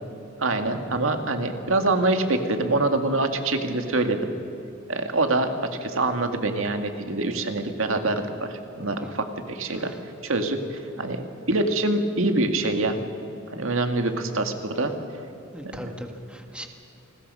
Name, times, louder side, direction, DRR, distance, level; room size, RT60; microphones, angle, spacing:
voice 1, 0.4-4.3 4.9-9.9 10.2-13.0 13.5-14.9 15.6-15.9, right 2 dB, 70° right, 6 dB, 2.0 m, -25 dB
voice 2, 15.5-16.7, equal, 5° right, 4 dB, 1.4 m, -39 dB
29.0 x 20.5 x 5.5 m, 2.9 s
head